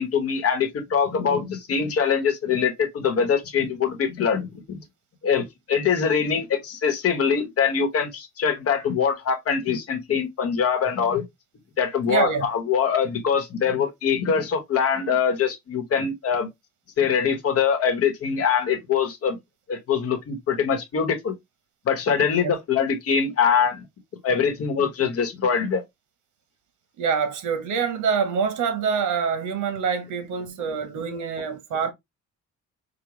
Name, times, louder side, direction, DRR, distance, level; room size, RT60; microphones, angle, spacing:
voice 1, 0.0-4.8 5.2-11.2 11.8-16.5 17.0-19.4 19.7-21.3 21.8-23.8 24.2-25.8, left 6 dB, 50° left, 1.1 m, -23 dB
voice 2, 12.1-12.5 22.3-22.5 27.0-31.9, right 6 dB, 85° right, 0.8 m, -25 dB
4.9 x 2.2 x 2.9 m
cardioid pair, 145°, 30 cm